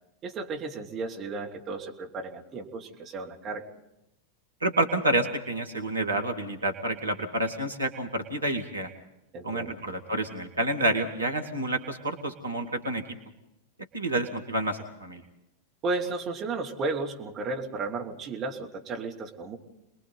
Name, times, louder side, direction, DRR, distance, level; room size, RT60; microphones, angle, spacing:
voice 1, 0.2-3.6 9.3-9.8 15.8-19.6, right 3 dB, 30° right, 1 dB, 2.8 m, -34 dB
voice 2, 4.6-8.9 9.4-13.0 13.9-15.2, right 1 dB, 80° right, 5 dB, 2.2 m, -29 dB
30.0 x 21.5 x 4.0 m, 0.88 s
figure-of-eight pair, 90°, 0 cm